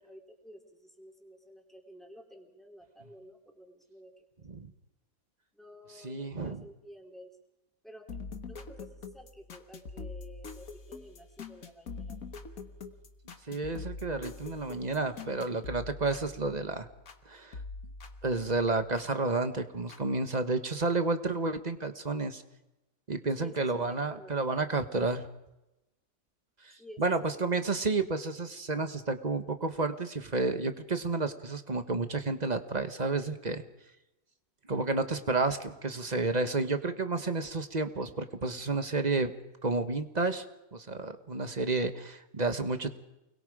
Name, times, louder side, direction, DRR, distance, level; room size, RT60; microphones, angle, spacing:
voice 1, 0.0-4.1 4.5-4.6 5.5-7.3 7.8-8.1 8.5-12.2 23.3-24.3 26.8-27.7, equal, ahead, 1 dB, 3.7 m, -52 dB
voice 2, 6.0-6.6 13.5-16.9 17.3-17.6 18.2-22.4 23.1-25.2 26.6-33.6 34.7-39.3 39.6-40.4 40.7-43.0, right 3 dB, 30° right, 8 dB, 1.5 m, -31 dB
sound 1, 8.1-17.2 17.5-19.1 19.9-20.0, left 4 dB, 75° left, 1.9 m, -44 dB
29.0 x 21.5 x 5.0 m, 0.94 s
omnidirectional pair, 1.5 m